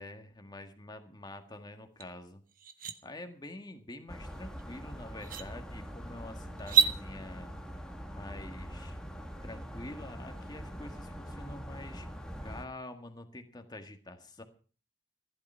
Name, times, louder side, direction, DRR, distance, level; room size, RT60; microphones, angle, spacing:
voice 1, 0.0-2.4 3.0-7.5 8.1-9.0 9.4-12.1 12.4-14.4, left 2 dB, 25° left, 6 dB, 1.8 m, -46 dB
sound 1, 2.0-2.1 2.5-2.9 4.6-4.7 5.2-5.5 6.6-6.9, right 7 dB, 50° right, 1.1 m, -27 dB
sound 2, 4.1-12.7, equal, 5° left, 1.6 m, -43 dB
15.0 x 12.0 x 5.6 m, 0.39 s
head